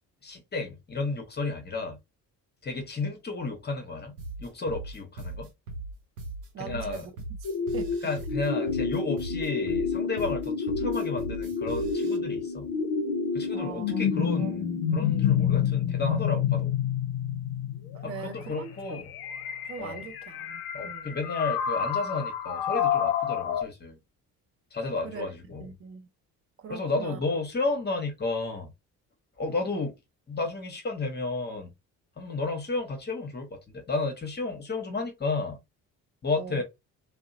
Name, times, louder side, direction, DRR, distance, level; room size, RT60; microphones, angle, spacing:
voice 1, 0.2-2.0 2.6-5.5 6.6-7.1 8.0-12.7 13.3-16.7 18.0-19.1 19.8-20.0 20.7-24.0 24.7-25.7 26.7-28.7 29.4-30.0 30.3-31.7 32.2-35.6 36.2-36.6, left 3 dB, 20° left, 1.0 m, -32 dB
sound 1, 4.2-12.2, right 2 dB, 80° right, 0.7 m, -39 dB
voice 2, 6.5-7.1 7.7-7.9 13.5-14.0 14.3-14.5 18.0-19.0 19.7-21.2 25.0-25.3 25.6-26.1 26.6-27.2 36.4-36.6, right 6 dB, 30° right, 0.7 m, -41 dB
sound 2, 7.4-23.6, left 7 dB, 50° left, 0.7 m, -29 dB
2.7 x 2.0 x 2.6 m
figure-of-eight pair, 45°, 46 cm